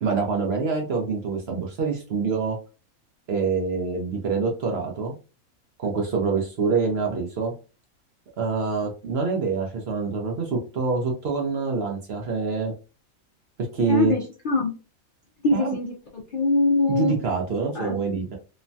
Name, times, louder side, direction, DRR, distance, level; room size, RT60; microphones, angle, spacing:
voice 1, 0.0-2.6 3.3-5.1 5.8-7.5 8.4-12.7 13.7-14.2 15.5-15.8 16.9-18.4, right 4 dB, 55° right, 1 dB, 0.8 m, -26 dB
voice 2, 13.9-14.7 15.4-17.2 17.7-17.9, left 2 dB, 65° left, 0 dB, 0.5 m, -23 dB
3.0 x 2.2 x 2.6 m, 0.33 s
omnidirectional pair, 1.5 m